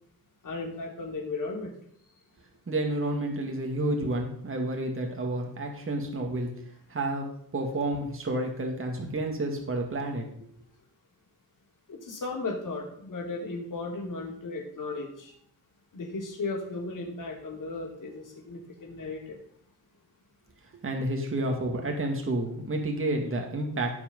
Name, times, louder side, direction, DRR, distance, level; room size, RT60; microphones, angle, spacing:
voice 1, 0.4-1.7 11.9-15.3 15.9-19.4, left 3 dB, 55° left, -1 dB, 3.4 m, -35 dB
voice 2, 2.7-6.5 6.9-7.3 7.5-10.3 20.8-23.9, right 1 dB, 35° right, 1 dB, 2.1 m, -30 dB
16.0 x 6.0 x 5.4 m, 0.65 s
wide cardioid pair, 125°, 38 cm